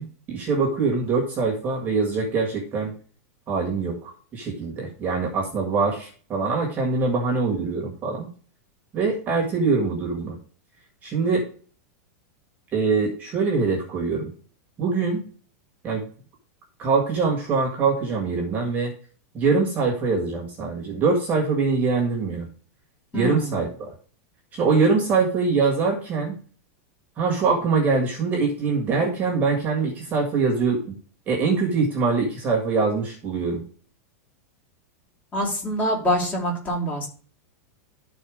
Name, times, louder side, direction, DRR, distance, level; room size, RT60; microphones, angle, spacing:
voice 1, 0.0-2.9 3.5-8.3 8.9-10.3 11.0-11.4 12.7-14.3 14.8-15.2 15.8-16.0 16.8-18.9 19.3-22.5 23.1-23.9 24.5-26.4 27.2-31.0 31.3-33.6, right 4 dB, 20° right, 0 dB, 1.8 m, -23 dB
voice 2, 23.1-23.6 35.3-37.1, equal, 20° left, -3 dB, 3.1 m, -25 dB
12.5 x 4.2 x 5.0 m, 0.43 s
supercardioid pair, 165°, 9 cm